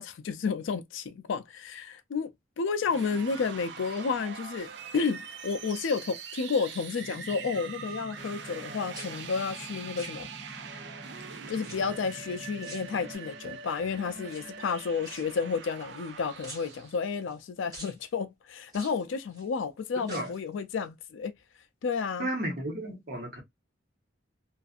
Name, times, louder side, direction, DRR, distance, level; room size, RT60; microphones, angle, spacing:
voice 1, 0.0-2.3 2.6-10.3 11.5-21.3 21.8-22.3, left 5 dB, 85° left, 0.4 m, -31 dB
sound 1, 2.9-17.0, right 6 dB, 65° right, 0.4 m, -43 dB
sound 2, 3.8-4.7 5.1-5.5 5.8-6.9 7.1-8.7 8.9-10.7 11.6-12.2 12.6-13.5 14.2-16.1 16.4-17.4 17.7-18.0 18.7-19.5 20.0-20.5 20.8-20.9, right 1 dB, 20° right, 1.0 m, -49 dB
sound 3, 7.0-13.1, equal, ahead, 0.5 m, -48 dB
voice 2, 20.0-20.3 22.2-23.4, right 1 dB, 50° right, 1.0 m, -33 dB
2.5 x 2.4 x 2.4 m
head